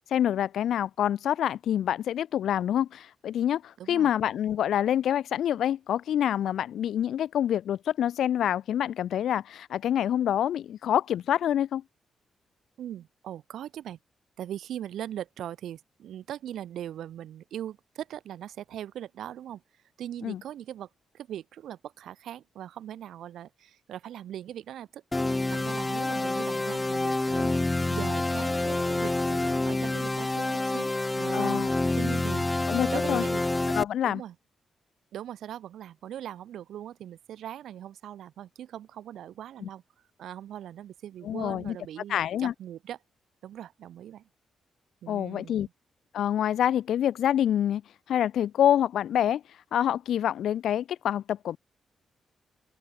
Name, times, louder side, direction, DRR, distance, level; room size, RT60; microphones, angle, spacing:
voice 1, 0.1-11.8 20.2-20.4 31.3-31.7 32.7-33.2 33.7-34.2 39.6-39.7 41.2-41.8 42.1-42.5 45.1-45.7 46.1-47.8 48.1-49.4 49.7-51.6, left 10 dB, 75° left, 1.2 m, -26 dB
voice 2, 3.8-4.1 12.8-14.0 14.4-19.6 20.0-20.9 21.1-25.0 25.5-32.5 32.9-33.4 34.0-34.3 35.1-39.8 40.2-43.0 43.4-44.3 45.0-45.7, right 11 dB, 85° right, 1.4 m, -40 dB
sound 1, 25.1-33.8, left 2 dB, 10° left, 0.3 m, -27 dB
open air
wide cardioid pair, 155°, 0 cm